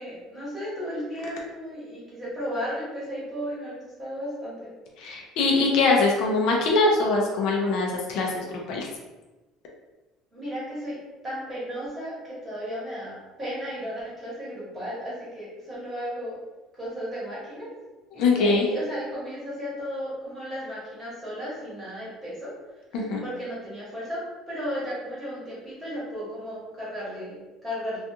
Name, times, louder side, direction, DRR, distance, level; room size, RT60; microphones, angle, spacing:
voice 1, 0.0-4.7 10.3-11.0 11.2-16.4 16.7-17.7 18.1-22.5 22.9-24.2 24.5-28.0, equal, 15° right, -9 dB, 1.1 m, -34 dB
voice 2, 5.0-8.9 18.1-18.6 22.9-23.2, left 3 dB, 60° left, -1 dB, 0.5 m, -23 dB
2.4 x 2.3 x 2.7 m, 1.1 s
cardioid pair, 160°, 0 cm